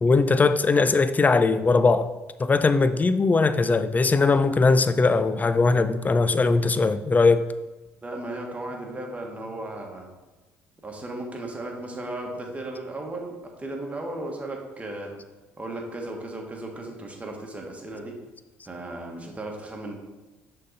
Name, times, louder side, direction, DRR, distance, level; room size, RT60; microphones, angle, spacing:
voice 1, 0.0-2.1 2.4-7.4, left 3 dB, 25° left, 12 dB, 0.4 m, -20 dB
voice 2, 8.0-10.1 10.8-15.1 15.6-18.2 18.6-20.0, right 2 dB, 20° right, 0 dB, 1.5 m, -35 dB
6.3 x 4.0 x 4.0 m, 1.1 s
hypercardioid pair, 60°, 6 cm